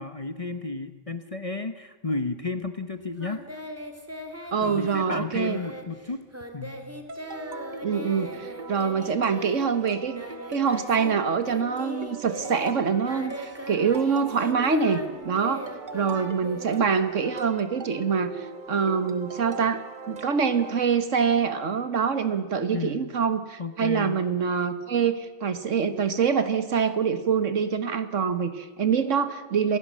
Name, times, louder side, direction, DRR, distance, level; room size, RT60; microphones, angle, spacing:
voice 1, 0.0-3.4 4.6-6.3 6.5-6.8 22.7-23.1 23.6-24.2, left 3 dB, 30° left, 10 dB, 0.9 m, -32 dB
Singing, 3.2-11.2 11.4-17.3, equal, 10° right, 2.1 m, -39 dB
voice 2, 4.5-5.6 7.8-10.2 10.5-15.6 15.9-29.8, right 6 dB, 65° right, 11 dB, 1.7 m, -25 dB
sound 1, 7.1-20.8, right 4 dB, 40° right, 1.2 m, -40 dB
27.0 x 16.0 x 7.5 m, 1.4 s
omnidirectional pair, 1.4 m